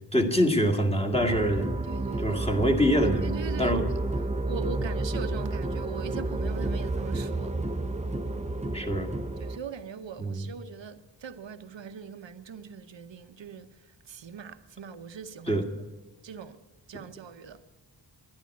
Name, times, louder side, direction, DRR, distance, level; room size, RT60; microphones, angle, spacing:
voice 1, 0.1-1.7 2.2-3.9 8.7-9.1 10.2-10.5 15.5-15.6, equal, 15° left, 2.0 m, -25 dB
sound 1, 1.1-9.6, right 2 dB, 15° right, 0.8 m, -31 dB
voice 2, 1.9-2.4 3.0-3.8 4.5-7.6 9.4-13.7 14.1-15.6 16.2-16.6 16.9-17.6, right 6 dB, 90° right, 0.9 m, -41 dB
11.5 x 11.5 x 8.3 m
wide cardioid pair, 100°, 43 cm